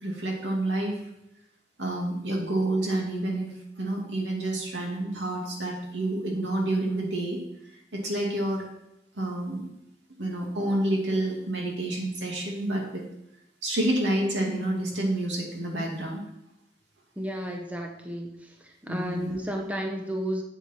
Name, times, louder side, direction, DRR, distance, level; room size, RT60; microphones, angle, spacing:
voice 1, 0.0-1.0 1.8-3.5 3.8-7.4 7.9-8.6 9.2-9.7 10.2-13.0 13.6-16.2 18.9-19.4, right 1 dB, 90° right, -1 dB, 2.5 m, -28 dB
voice 2, 17.2-18.3 18.6-20.4, equal, 10° right, 1 dB, 0.9 m, -32 dB
8.2 x 7.9 x 4.5 m, 0.84 s
head